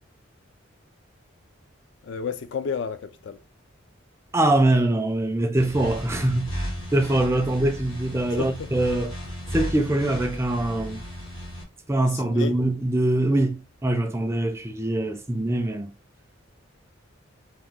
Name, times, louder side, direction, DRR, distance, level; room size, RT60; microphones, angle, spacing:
voice 1, 2.0-3.4 8.4-8.7 12.3-12.5, left 6 dB, 60° left, 0.4 m, -31 dB
voice 2, 4.3-9.1 9.5-11.0 11.9-15.9, right 1 dB, 15° right, 0.3 m, -23 dB
sound 1, 5.6-11.6, equal, 90° left, 1.5 m, -34 dB
2.9 x 2.3 x 3.6 m
head